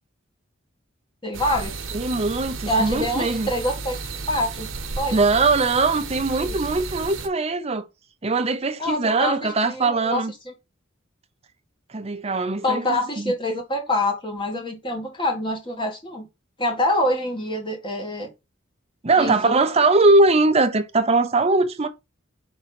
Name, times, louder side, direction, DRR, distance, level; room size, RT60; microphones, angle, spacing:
voice 1, 1.2-1.8 2.7-4.0 4.3-4.7 5.0-5.2 6.3-6.6 8.8-10.5 12.6-16.3 16.6-18.3 19.2-19.5, left 1 dB, 25° left, 1.9 m, -26 dB
sound 1, 1.3-7.3, right 4 dB, 80° right, 1.1 m, -33 dB
voice 2, 1.9-3.5 5.1-7.9 8.2-10.3 11.9-13.3 19.0-21.9, right 3 dB, 30° right, 0.7 m, -21 dB
5.6 x 3.8 x 5.8 m
head